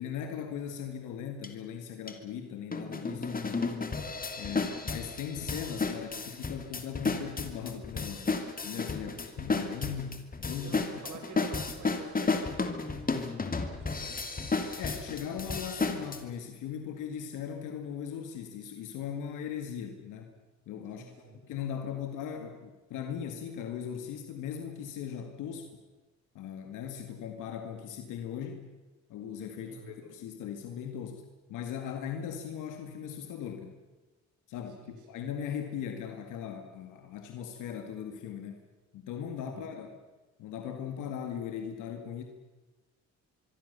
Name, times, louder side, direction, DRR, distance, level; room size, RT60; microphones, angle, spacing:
voice 1, 0.0-3.7 4.4-8.3 8.6-10.8 11.1-11.2 14.8-20.4 20.7-25.8 26.3-28.6 29.1-31.2 31.5-33.7 34.5-38.6 38.9-39.9 40.4-42.2, left 8 dB, 90° left, 5 dB, 2.2 m, -39 dB
sound 1, 1.4-1.5 2.1-2.2 2.7-16.2, left 4 dB, 30° left, 2.8 m, -33 dB
voice 2, 4.3-4.9 8.9-9.2 10.6-14.3 20.9-21.4 29.6-30.1 34.8-34.9 39.4-39.5, right 4 dB, 85° right, 3 dB, 6.6 m, -49 dB
24.5 x 24.0 x 6.9 m, 1.2 s
cardioid pair, 90°, 30 cm